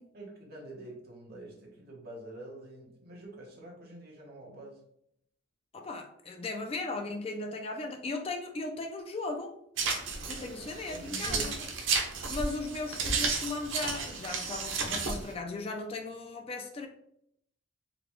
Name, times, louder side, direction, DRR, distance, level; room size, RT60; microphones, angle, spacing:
voice 1, 0.1-4.8 10.9-11.5 12.9-13.1, right 2 dB, 55° right, 0.9 m, -46 dB
voice 2, 5.7-9.6 10.3-11.5 12.3-16.9, left 3 dB, 30° left, 0.3 m, -37 dB
sound 1, 9.8-15.3, right 4 dB, 85° right, 0.7 m, -33 dB
3.9 x 2.2 x 3.0 m
head